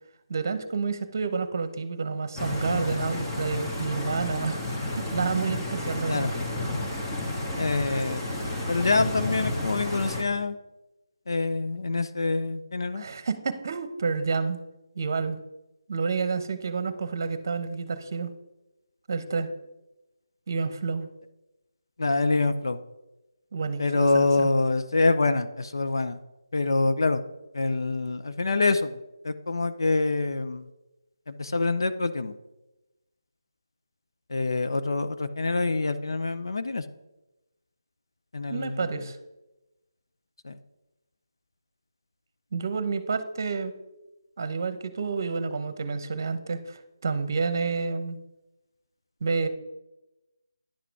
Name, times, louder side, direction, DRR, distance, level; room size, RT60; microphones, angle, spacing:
voice 1, 0.3-6.3 12.9-14.6 15.0-15.4 15.9-18.3 19.1-19.5 20.5-21.1 23.5-24.5 38.5-39.2 42.5-43.7 44.4-48.2 49.2-49.5, right 4 dB, 45° right, 12 dB, 0.9 m, -29 dB
Stream, 2.4-10.2, left 1 dB, 20° left, 1.4 m, -31 dB
voice 2, 7.6-8.3 8.7-10.6 11.3-13.0 22.0-22.8 23.8-26.2 26.5-27.2 27.5-29.0 29.2-30.7 31.3-32.3 34.3-36.8 38.3-38.9 40.4-40.5, left 3 dB, 65° left, 10 dB, 0.6 m, -25 dB
10.0 x 5.9 x 4.7 m, 0.98 s
figure-of-eight pair, 160°, 2 cm